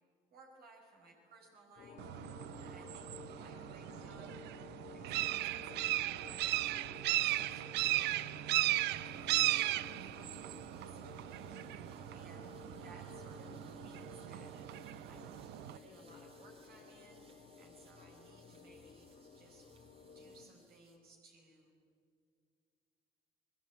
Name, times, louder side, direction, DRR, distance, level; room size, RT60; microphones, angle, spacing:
voice 1, 0.3-2.2 2.6-3.1 3.3-4.3 5.0-5.9 6.3-11.4 12.1-12.5 12.8-14.5 15.1-15.3 15.7-17.2 17.6-19.1 19.3-19.7 20.1-21.7, right 3 dB, 65° right, 1 dB, 5.1 m, -61 dB
sound 1, 1.8-20.5, left 5 dB, 55° left, 3.0 m, -54 dB
sound 2, 2.0-15.8, right 16 dB, 80° right, 0.6 m, -37 dB
sound 3, 8.9-21.0, right 3 dB, 35° right, 3.7 m, -69 dB
29.5 x 19.5 x 8.5 m, 2.2 s
cardioid pair, 110°, 17 cm